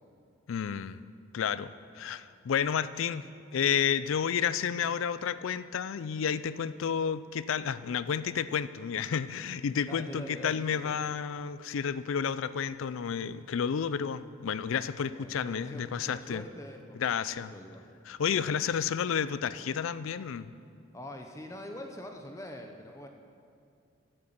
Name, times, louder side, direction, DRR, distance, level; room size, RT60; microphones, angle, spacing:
voice 1, 0.5-1.0 1.3-3.2 3.5-16.4 17.0-17.5 18.1-20.5, left 7 dB, 80° left, 15 dB, 0.4 m, -31 dB
voice 2, 9.9-11.1 15.1-17.8 18.3-18.6 20.9-23.1, left 1 dB, 15° left, 4 dB, 0.6 m, -44 dB
11.0 x 7.8 x 7.7 m, 2.4 s
head